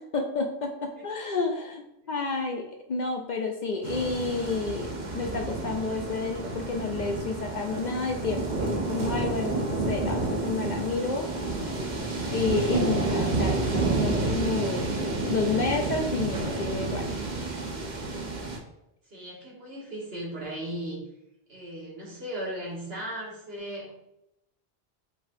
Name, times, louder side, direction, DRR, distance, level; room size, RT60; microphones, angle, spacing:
voice 1, 0.0-11.8 12.3-14.9 15.3-17.2, left 4 dB, 55° left, 3 dB, 0.6 m, -30 dB
sound 1, 3.8-18.6, right 3 dB, 50° right, 0.9 m, -30 dB
voice 2, 19.1-21.0 21.5-23.9, right 1 dB, 70° right, -5 dB, 1.7 m, -36 dB
4.9 x 4.0 x 2.6 m, 0.85 s
omnidirectional pair, 1.0 m